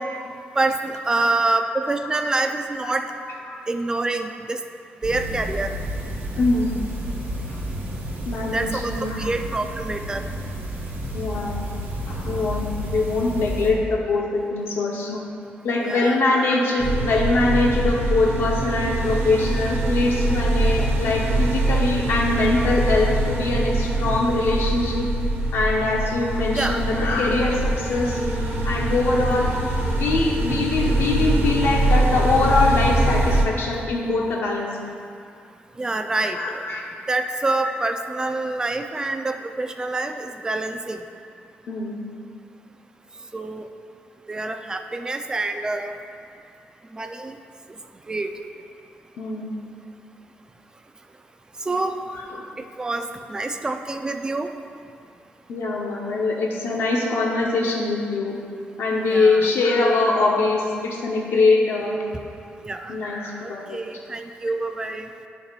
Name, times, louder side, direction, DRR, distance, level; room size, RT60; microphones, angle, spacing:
voice 1, 0.6-3.1 3.7-4.6 5.0-5.7 8.5-8.9 9.2-10.2 15.8-16.2 26.6-26.8 35.8-36.6 37.1-41.0 43.3-43.7 44.3-45.9 46.9-47.3 48.1-48.3 51.7-52.0 52.8-54.5 59.1-59.5 62.6-62.9 63.4-65.1, right 2 dB, 20° right, 6 dB, 0.4 m, -26 dB
voice 2, 3.2-3.6 6.4-6.8 7.5-7.6 8.3-9.3 11.1-11.6 12.1-15.2 15.6-25.1 25.5-28.2 28.6-29.6 30.0-34.9 36.3-36.8 37.6-37.7 41.7-42.0 49.2-49.6 52.1-52.4 55.5-58.4 58.8-62.0 62.9-63.8, left 3 dB, 75° left, -2 dB, 0.7 m, -23 dB
sound 1, 5.0-13.7, equal, 60° right, 1.4 m, -31 dB
sound 2, 16.8-33.4, right 1 dB, 90° right, 0.9 m, -23 dB
10.5 x 5.4 x 2.4 m, 2.3 s
cardioid pair, 125°, 4 cm